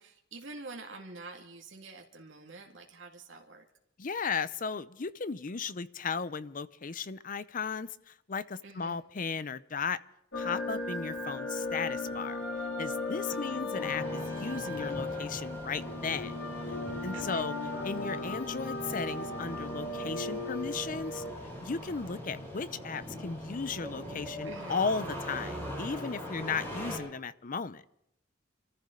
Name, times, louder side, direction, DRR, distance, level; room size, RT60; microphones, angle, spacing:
voice 1, 0.0-3.6 8.6-9.0 13.3-13.6 17.1-17.5 24.4-24.8, right 3 dB, 90° right, 1 dB, 2.1 m, -47 dB
voice 2, 4.0-10.0 10.3-12.4 12.8-16.3 17.0-17.5 17.8-21.2 21.6-27.8, left 5 dB, 45° left, 16 dB, 0.6 m, -35 dB
sound 1, 10.3-21.3, left 2 dB, 75° left, 2.4 m, -36 dB
Engine starting, 13.8-27.0, equal, 15° left, 6.5 m, -41 dB
26.5 x 14.5 x 3.8 m, 0.78 s
head